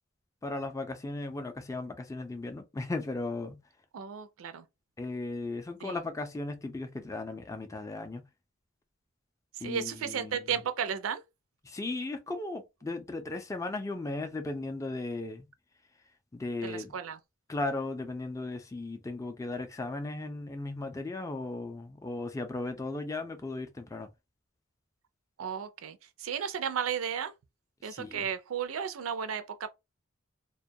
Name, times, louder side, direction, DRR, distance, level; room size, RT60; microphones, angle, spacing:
voice 1, 0.4-3.6 5.0-8.2 9.6-10.4 11.6-15.5 16.3-16.9 17.5-24.1 27.8-28.3, left 2 dB, 15° left, 0.4 m, -36 dB
voice 2, 3.9-4.6 5.8-6.0 9.5-11.2 16.6-17.2 25.4-27.3 27.8-29.7, right 7 dB, 85° right, 0.4 m, -34 dB
2.2 x 2.2 x 2.6 m
head